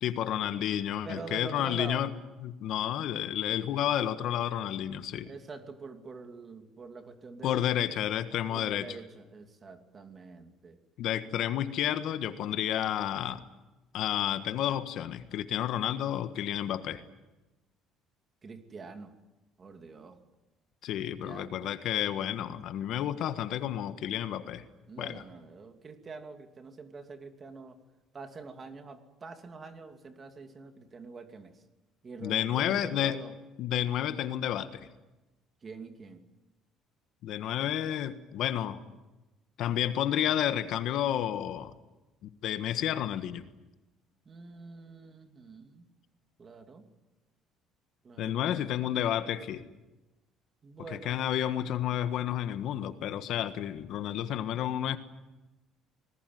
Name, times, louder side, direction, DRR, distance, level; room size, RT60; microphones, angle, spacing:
voice 1, 0.0-2.1 2.4-5.3 7.4-9.0 11.0-13.4 13.9-17.0 20.8-24.6 25.0-25.2 32.2-33.2 33.6-34.9 37.2-38.8 39.6-41.7 42.2-43.4 48.2-49.6 50.9-55.0, left 11 dB, 60° left, 10 dB, 1.5 m, -31 dB
voice 2, 1.0-2.1 5.3-7.6 8.5-10.8 18.4-19.1 19.6-20.2 21.0-21.6 24.9-27.8 28.1-31.6 32.0-33.3 35.6-36.2 44.2-45.9 46.4-46.9 48.0-48.4 50.6-51.2, right 4 dB, 25° right, 6 dB, 2.7 m, -45 dB
26.5 x 19.5 x 9.4 m, 1.1 s
cardioid pair, 145°, 0 cm